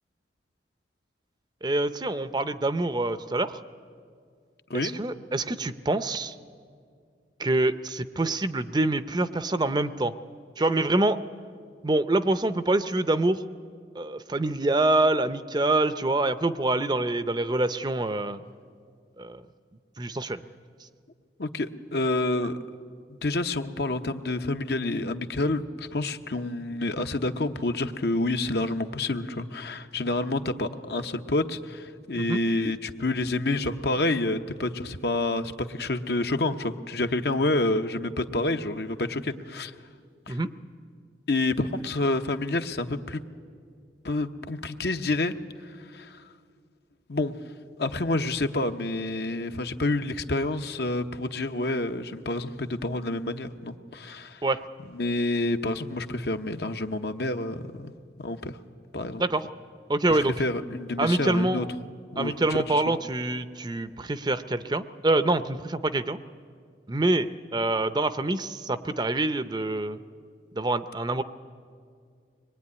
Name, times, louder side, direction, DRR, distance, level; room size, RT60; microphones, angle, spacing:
voice 1, 1.6-3.6 4.7-6.4 7.4-10.1 10.6-11.2 11.8-13.4 14.0-18.4 19.2-19.4 20.0-20.4 32.2-32.4 40.3-40.5 54.4-54.6 59.2-59.5 59.9-60.3 61.0-61.7 62.2-66.2 66.9-70.0 70.5-71.2, right 2 dB, 25° right, 12 dB, 0.6 m, -26 dB
voice 2, 21.4-22.6 23.2-39.7 40.3-40.4 41.3-43.2 44.0-45.3 45.6-46.2 47.1-47.3 47.8-54.4 54.9-58.6 58.9-59.2 60.1-61.7 62.1-63.0, left 2 dB, 60° left, 7 dB, 1.0 m, -28 dB
24.5 x 21.0 x 9.7 m, 2.2 s
head